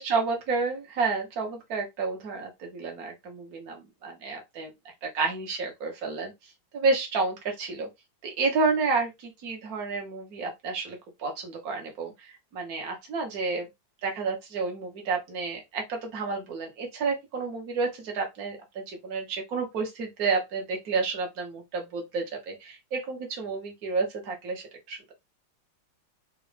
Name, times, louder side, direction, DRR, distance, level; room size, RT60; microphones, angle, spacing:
voice 1, 0.0-4.7 5.0-6.3 6.7-7.9 8.2-13.7 14.0-25.1, right 4 dB, 45° right, 1.8 m, -30 dB
5.2 x 2.7 x 3.4 m
omnidirectional pair, 2.4 m